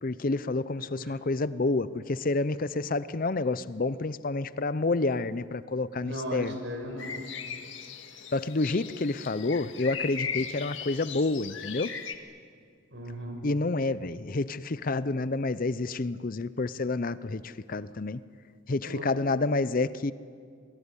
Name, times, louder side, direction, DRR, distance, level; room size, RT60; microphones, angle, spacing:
voice 1, 0.0-6.6 8.3-11.9 13.4-18.2 18.7-20.1, left 3 dB, 45° left, 15 dB, 0.6 m, -29 dB
voice 2, 6.0-7.2 12.9-13.4 18.8-19.1, equal, 60° right, 4 dB, 5.6 m, -37 dB
sound 1, 7.0-12.2, left 7 dB, 75° left, 1.9 m, -38 dB
26.5 x 20.5 x 9.8 m, 2.2 s
head